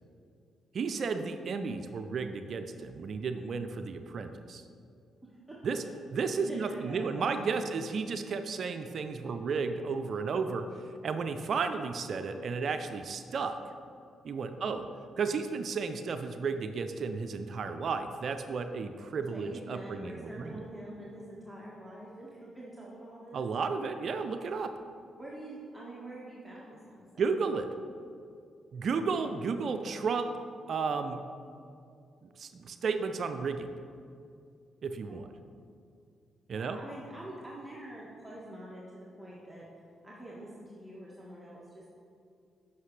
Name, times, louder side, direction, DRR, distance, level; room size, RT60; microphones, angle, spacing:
voice 1, 0.7-4.6 5.6-5.8 6.1-10.6 11.0-13.6 14.2-14.8 15.2-20.6 23.3-24.7 27.2-27.7 28.7-30.3 30.7-31.2 32.2-33.7 34.8-35.3 36.5-36.8, right 5 dB, 60° right, 8 dB, 0.4 m, -33 dB
voice 2, 6.5-7.7 14.5-14.7 19.3-23.4 25.2-27.0 34.9-35.2 36.5-39.7 40.0-41.9, right 1 dB, 5° right, -6 dB, 1.5 m, -45 dB
9.4 x 5.9 x 3.2 m, 2.4 s
supercardioid pair, 50°, 0 cm